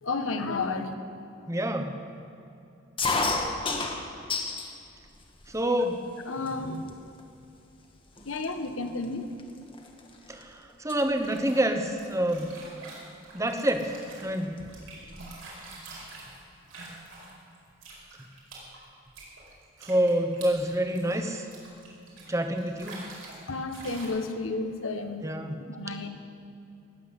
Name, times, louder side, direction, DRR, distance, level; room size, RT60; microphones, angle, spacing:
voice 1, 0.0-0.9 6.2-6.8 8.2-9.3 23.5-25.2 25.7-26.1, left 3 dB, 80° left, 7 dB, 1.2 m, -32 dB
voice 2, 1.5-1.9 5.5-6.0 10.3-12.5 13.3-13.9 14.2-14.5 19.8-21.5 22.3-23.1 25.2-25.5, right 1 dB, 15° right, 6 dB, 1.0 m, -27 dB
sound 1, 3.0-4.7 5.1-5.8 6.5-6.6 6.8-7.2 7.8-7.9 8.2-10.4 10.7-11.0 12.3-12.6 13.7-13.8 14.0-14.1 14.4-15.3, left 3 dB, 25° left, 1.3 m, -31 dB
sound 2, 11.2-17.6 17.8-23.5 23.7-24.1, right 3 dB, 85° right, 4.9 m, -46 dB
19.5 x 8.0 x 8.1 m, 2.7 s
head